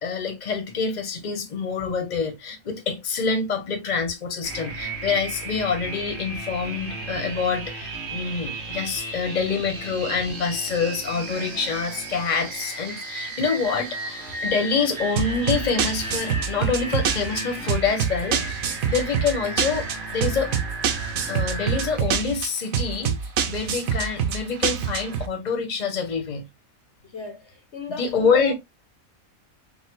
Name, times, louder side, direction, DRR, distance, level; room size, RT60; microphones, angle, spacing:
voice 1, 0.0-19.8 20.1-20.5 21.3-26.4 28.0-28.5, left 5 dB, 35° left, 1.1 m, -26 dB
sound 1, 4.4-22.0, right 2 dB, 40° right, 1.0 m, -34 dB
sound 2, 15.2-25.3, right 8 dB, 70° right, 1.1 m, -26 dB
voice 2, 27.0-28.5, left 4 dB, 55° left, 1.2 m, -36 dB
5.3 x 2.2 x 3.7 m
omnidirectional pair, 1.5 m